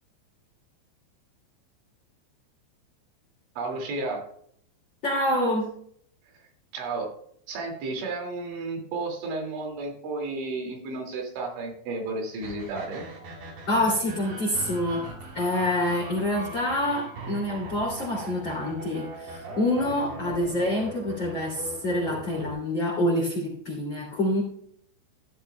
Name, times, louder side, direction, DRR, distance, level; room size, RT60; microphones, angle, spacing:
voice 1, 3.6-4.3 6.7-7.1 7.5-13.0, right 3 dB, 75° right, 1 dB, 4.7 m, -32 dB
voice 2, 5.0-5.7 13.7-15.1 15.3-24.4, left 1 dB, 30° left, -5 dB, 2.6 m, -26 dB
sound 1, 12.4-22.5, right 1 dB, 55° right, 5.2 m, -40 dB
14.5 x 12.0 x 2.2 m, 0.64 s
omnidirectional pair, 5.5 m